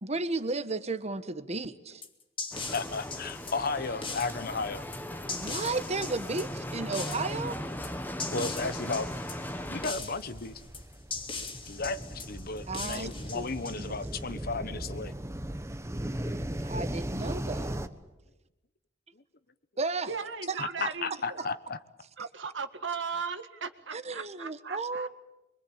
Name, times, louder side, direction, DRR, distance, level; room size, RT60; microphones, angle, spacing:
voice 1, 0.0-2.0 5.3-7.6 12.7-13.5 13.8-14.0 16.7-17.8 19.8-20.1 20.5-20.6 23.9-25.1, right 3 dB, 35° right, 12 dB, 1.4 m, -33 dB
sound 1, 2.0-14.2, left 4 dB, 30° left, 2.7 m, -40 dB
Bicycle, 2.5-9.9, equal, 10° left, 1.4 m, -38 dB
voice 2, 2.7-4.9 8.3-9.1 9.7-10.5 11.7-15.1 20.6-21.8, left 4 dB, 55° left, 13 dB, 1.2 m, -34 dB
sound 2, 8.6-17.9, right 1 dB, 15° right, 1.3 m, -38 dB
voice 3, 20.1-21.5 22.2-25.1, right 5 dB, 75° right, 9 dB, 1.8 m, -37 dB
25.5 x 24.0 x 8.9 m, 0.96 s
head